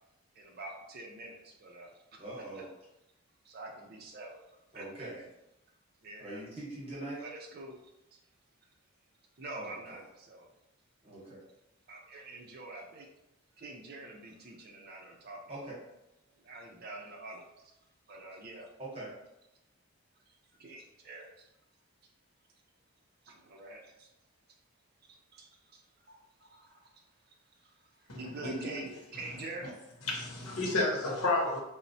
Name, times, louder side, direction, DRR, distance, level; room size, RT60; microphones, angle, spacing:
voice 1, 0.3-1.9 2.6-2.7 3.4-4.4 4.7-4.8 6.0-6.4 7.2-8.2 9.4-10.5 11.9-13.1 13.6-15.4 16.3-17.7 18.1-18.7 20.3-21.5 23.2-24.1 25.0-29.7, right 2 dB, 45° right, 1 dB, 0.4 m, -46 dB
voice 2, 2.2-2.7 4.7-5.2 6.2-7.2 9.5-10.0 11.0-11.4 15.5-15.7 18.8-19.1, right 2 dB, 25° right, -6 dB, 0.9 m, -42 dB
voice 3, 28.1-28.8 30.1-31.6, left 2 dB, 85° left, -1 dB, 0.8 m, -31 dB
4.0 x 2.0 x 2.6 m, 0.91 s
head